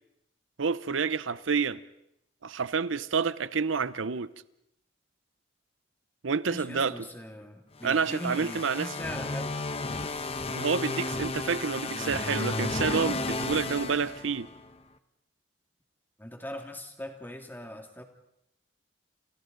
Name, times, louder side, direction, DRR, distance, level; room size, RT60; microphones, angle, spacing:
voice 1, 0.6-1.8 2.4-4.3 6.2-6.9 7.8-8.9 10.5-14.5, right 5 dB, 85° right, 0.7 m, -28 dB
voice 2, 6.5-9.6 16.2-18.0, equal, 10° left, 2.1 m, -40 dB
sound 1, 7.8-14.7, left 2 dB, 30° left, 1.1 m, -33 dB
29.5 x 27.5 x 3.9 m
head